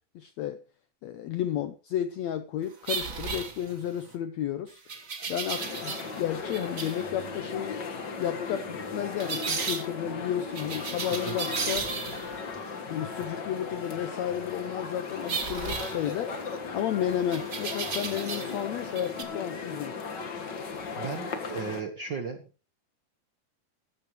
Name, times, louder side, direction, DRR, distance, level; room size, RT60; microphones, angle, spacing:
voice 1, 0.1-0.6 1.0-4.8 5.3-7.8 8.2-11.9 12.9-16.3 16.7-19.9, left 10 dB, 85° left, 11 dB, 1.5 m, -32 dB
sound 1, 2.8-4.1 4.9-6.2 6.5-7.0 9.2-9.9 10.6-12.4 15.3-16.6 17.3-18.6 18.9-19.2, right 5 dB, 55° right, 0.8 m, -34 dB
sound 2, 5.5-21.8, left 4 dB, 45° left, 1.6 m, -37 dB
voice 2, 21.0-22.5, right 6 dB, 80° right, 7 dB, 1.0 m, -36 dB
15.5 x 13.5 x 3.2 m, 0.34 s
omnidirectional pair, 4.1 m